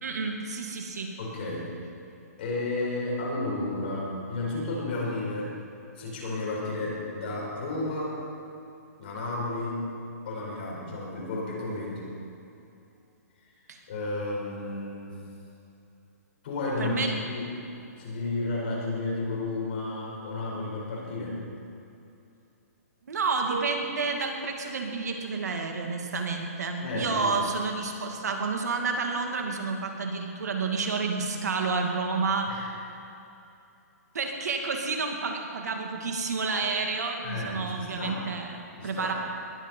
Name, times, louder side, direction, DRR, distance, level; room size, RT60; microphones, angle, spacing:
voice 1, 0.0-1.1 13.7-13.8 16.8-17.2 23.1-32.6 34.1-39.1, right 4 dB, 75° right, 2 dB, 2.4 m, -30 dB
voice 2, 1.2-1.7 2.4-5.6 5.9-8.2 9.0-9.9 10.2-12.1 13.9-15.1 16.4-17.5 18.0-21.4 26.8-27.4 32.5-32.7 37.2-38.2 38.8-39.1, left 2 dB, 35° left, -4 dB, 4.8 m, -32 dB
sound 1, 23.5-24.7, right 7 dB, 60° right, 2.5 m, -38 dB
20.5 x 11.0 x 5.6 m, 2.7 s
hypercardioid pair, 175°, 9 cm